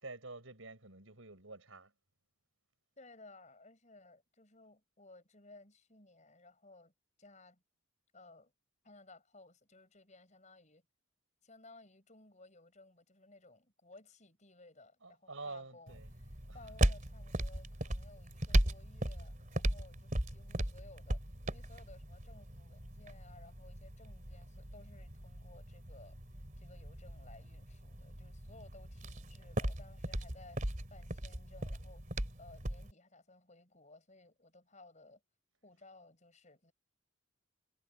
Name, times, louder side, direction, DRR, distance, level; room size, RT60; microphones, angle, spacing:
voice 1, 0.0-1.9 15.0-16.2 16.4-16.9, right 3 dB, 75° right, 6.5 m, -48 dB
voice 2, 3.0-6.9 7.2-7.6 8.1-8.5 8.8-10.8 11.4-26.2 26.6-35.2 35.6-36.7, left 2 dB, 35° left, 6.6 m, -59 dB
sound 1, 15.9-32.9, right 1 dB, 40° right, 3.0 m, -37 dB
head